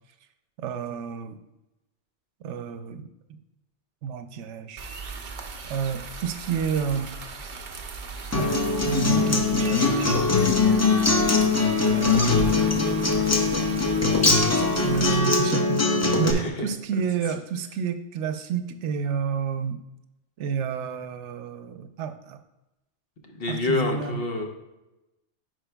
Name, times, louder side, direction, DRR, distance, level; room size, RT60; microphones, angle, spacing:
voice 1, 0.6-1.4 2.4-3.4 4.0-4.9 5.6-7.1 8.3-8.5 8.8-10.0 11.8-12.5 14.5-19.8 20.4-22.4 23.5-24.2, right 7 dB, 80° right, 9 dB, 0.9 m, -30 dB
sound 1, 4.8-15.2, right 3 dB, 50° right, 0.7 m, -38 dB
Acoustic guitar, 8.3-16.3, left 3 dB, 20° left, 0.5 m, -21 dB
voice 2, 16.2-16.7 23.3-24.4, left 3 dB, 55° left, 2 dB, 1.1 m, -27 dB
10.0 x 4.7 x 2.3 m, 0.94 s
omnidirectional pair, 1.2 m